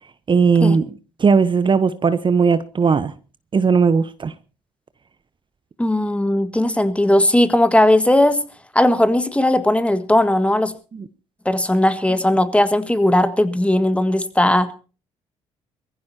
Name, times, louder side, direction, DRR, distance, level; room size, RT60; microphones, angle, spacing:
voice 1, 0.3-0.9 1.2-3.1 3.5-4.3 10.9-11.0, right 5 dB, 35° right, 0.9 m, -17 dB
voice 2, 5.8-8.4 8.7-10.7 11.4-14.7, left 1 dB, 10° left, 1.7 m, -17 dB
23.0 x 15.0 x 2.8 m
hypercardioid pair, 55°, 14 cm